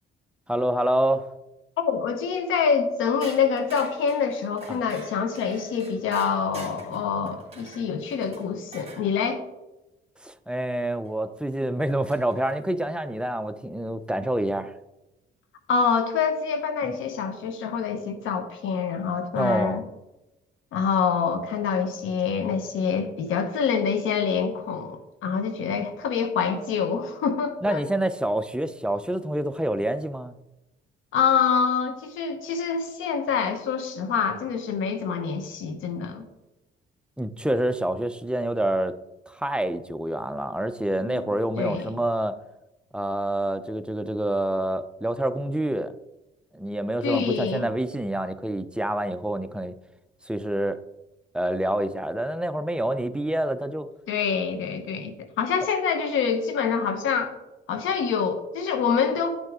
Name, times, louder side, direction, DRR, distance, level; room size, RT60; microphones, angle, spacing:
voice 1, 0.5-1.2 4.7-4.8 10.2-14.7 19.3-19.8 27.6-30.3 37.2-38.9 39.3-42.4 42.9-45.9 46.5-49.7 50.3-50.8 51.3-53.9, right 1 dB, 5° right, 0.5 m, -27 dB
voice 2, 1.8-9.4 15.7-19.9 20.7-27.8 31.1-36.3 41.0-42.0 47.0-47.7 54.1-57.3 57.7-59.3, left 6 dB, 85° left, 1.1 m, -26 dB
sound 1, 3.2-9.1 11.0-11.1 12.1-12.6, right 2 dB, 30° right, 2.5 m, -45 dB
10.0 x 6.3 x 3.7 m
cardioid pair, 90°, 20 cm